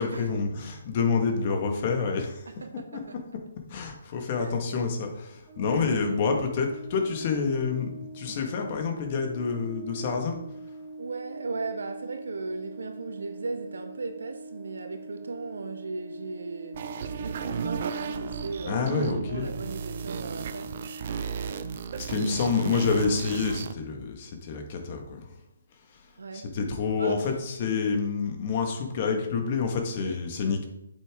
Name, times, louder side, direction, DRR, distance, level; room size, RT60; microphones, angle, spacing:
voice 1, 0.0-2.4 2.9-3.2 3.7-7.9 8.1-10.4 18.7-19.5 22.0-25.2 26.3-30.6, left 5 dB, 40° left, 1.9 m, -28 dB
voice 2, 2.5-3.2 4.4-4.6 5.7-6.2 11.0-16.8 17.2-21.1 21.9-22.9 26.2-26.5 27.0-27.3 30.0-30.2, right 3 dB, 75° right, 1.4 m, -37 dB
Brass instrument, 5.5-21.8, right 2 dB, 30° right, 1.3 m, -43 dB
sound 1, 16.7-23.7, right 6 dB, 45° right, 0.7 m, -35 dB
8.3 x 7.9 x 3.8 m
figure-of-eight pair, 145°, 0 cm